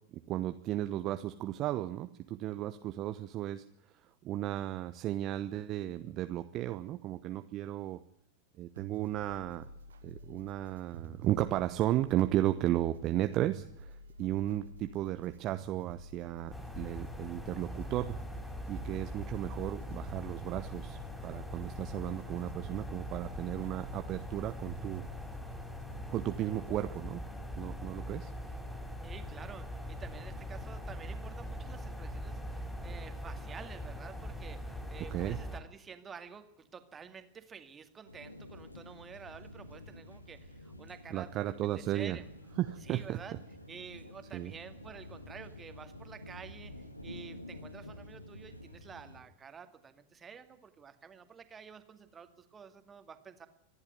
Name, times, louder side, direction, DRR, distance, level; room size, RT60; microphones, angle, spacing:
voice 1, 0.1-3.6 4.2-8.0 8.6-9.6 10.0-18.2 18.6-25.0 26.1-27.2 27.6-28.3 35.1-35.4 41.1-42.2 42.6-43.2 44.3-44.5, right 13 dB, 35° right, 9 dB, 1.0 m, -34 dB
sound 1, 8.8-27.0, right 3 dB, 65° right, 1.7 m, -50 dB
sound 2, 16.5-35.6, equal, 5° left, 4.4 m, -42 dB
voice 2, 29.0-42.3 42.8-43.4 43.7-53.5, right 6 dB, 20° right, 8 dB, 2.2 m, -50 dB
sound 3, 38.1-49.2, left 1 dB, 85° left, 1.9 m, -49 dB
25.5 x 11.5 x 9.4 m, 0.76 s
figure-of-eight pair, 90°, 0 cm